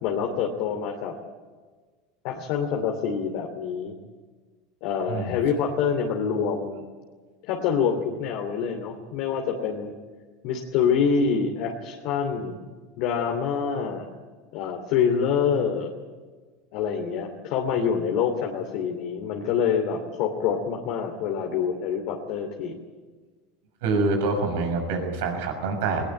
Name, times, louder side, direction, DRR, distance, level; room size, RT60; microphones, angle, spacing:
voice 1, 0.0-1.2 2.2-4.0 4.8-6.8 7.5-9.9 10.4-12.6 13.0-14.1 14.5-15.9 16.7-22.8, left 6 dB, 65° left, 2 dB, 2.8 m, -26 dB
voice 2, 23.8-26.0, right 3 dB, 75° right, 4 dB, 6.4 m, -25 dB
19.5 x 19.0 x 9.2 m, 1.4 s
hypercardioid pair, 95°, 0 cm